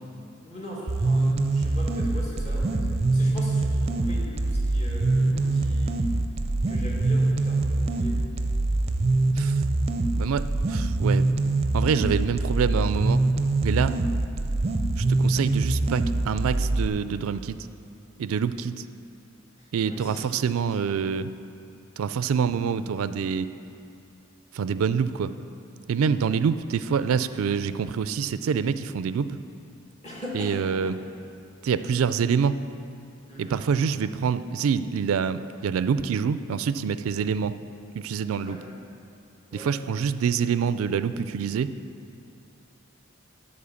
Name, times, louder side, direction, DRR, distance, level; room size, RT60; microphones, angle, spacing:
voice 1, 0.4-2.9 3.1-6.0 6.7-8.2 19.6-20.2 30.0-30.9 33.3-33.5 38.4-38.6 39.5-39.7, left 1 dB, 35° left, -4 dB, 2.1 m, -40 dB
sound 1, 0.9-16.9, right 2 dB, 30° right, 0.5 m, -24 dB
voice 2, 10.2-11.3 11.7-13.2 13.6-14.0 15.0-17.6 18.2-18.9 19.7-21.3 22.0-23.5 24.5-25.3 25.9-29.4 30.3-31.0 31.6-32.6 33.4-37.6 37.9-38.6 39.5-41.7, right 6 dB, 90° right, 13 dB, 0.4 m, -26 dB
12.5 x 4.3 x 7.1 m, 2.6 s
head